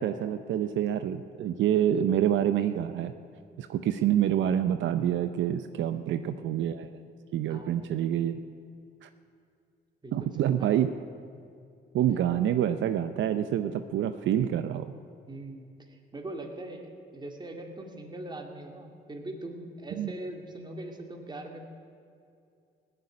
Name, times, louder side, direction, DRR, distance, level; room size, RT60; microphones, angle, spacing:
voice 1, 0.0-3.1 3.6-6.9 7.3-8.4 9.0-9.1 10.1-10.9 11.9-14.9 20.0-20.1, right 10 dB, 70° right, 10 dB, 0.6 m, -27 dB
voice 2, 7.5-7.9 10.0-10.8 15.3-21.7, right 1 dB, 20° right, 3 dB, 2.1 m, -41 dB
17.0 x 6.8 x 9.7 m, 2.4 s
cardioid pair, 90°, 20 cm